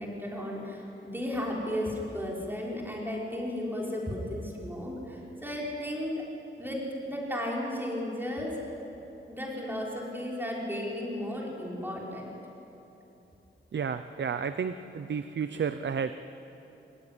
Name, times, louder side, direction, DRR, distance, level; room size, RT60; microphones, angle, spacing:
voice 1, 0.0-6.2 6.6-8.7 9.3-12.3, left 1 dB, 10° right, -3 dB, 5.3 m, -34 dB
voice 2, 13.7-16.1, right 6 dB, 60° right, 11 dB, 0.7 m, -31 dB
25.5 x 21.5 x 9.9 m, 3.0 s
wide cardioid pair, 145°, 20 cm